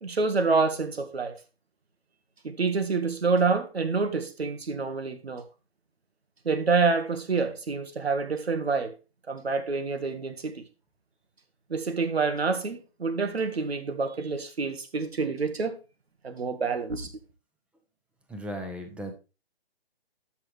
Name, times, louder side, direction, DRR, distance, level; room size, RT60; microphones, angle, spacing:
voice 1, 0.0-1.4 2.4-5.4 6.5-8.9 9.3-10.6 11.7-15.8 16.2-17.1, right 4 dB, 80° right, 1.9 m, -27 dB
voice 2, 18.3-19.1, equal, 5° right, 0.9 m, -36 dB
12.5 x 6.1 x 3.4 m
figure-of-eight pair, 140°, 31 cm